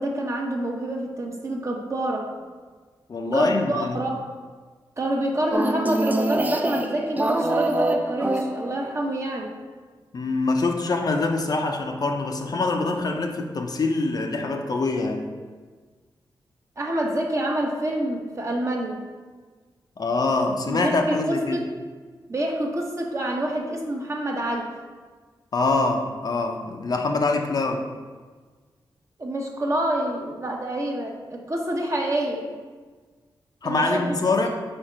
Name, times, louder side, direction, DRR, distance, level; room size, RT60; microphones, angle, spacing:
voice 1, 0.0-2.3 3.3-4.2 5.0-9.5 16.8-19.0 20.7-21.7 22.3-24.7 29.2-32.5 33.6-34.2, right 1 dB, 35° right, 0 dB, 0.9 m, -27 dB
voice 2, 3.1-4.0 10.1-15.3 20.0-21.6 25.5-27.8 33.6-34.5, left 3 dB, 50° left, 3 dB, 0.6 m, -24 dB
sound 1, 5.5-9.0, right 1 dB, 20° right, 0.4 m, -25 dB
4.4 x 4.3 x 5.0 m, 1.5 s
cardioid pair, 85°, 9 cm